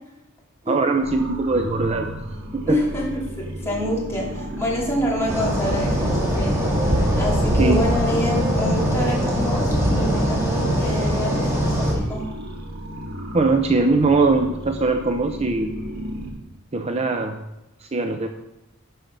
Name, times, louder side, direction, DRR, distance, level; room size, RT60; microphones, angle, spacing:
voice 1, 0.7-2.2 2.7-2.8 7.6-7.8 13.3-15.7 16.7-17.4 17.8-18.3, right 3 dB, 30° right, 5 dB, 0.6 m, -21 dB
sound 1, 1.0-16.3, equal, 50° right, 1.7 m, -32 dB
voice 2, 2.6-6.5 6.8-6.9 7.2-12.2, equal, 15° left, -5 dB, 2.7 m, -27 dB
sound 2, 5.3-11.9, equal, 15° right, 2.4 m, -22 dB
11.5 x 5.7 x 5.2 m, 0.94 s
head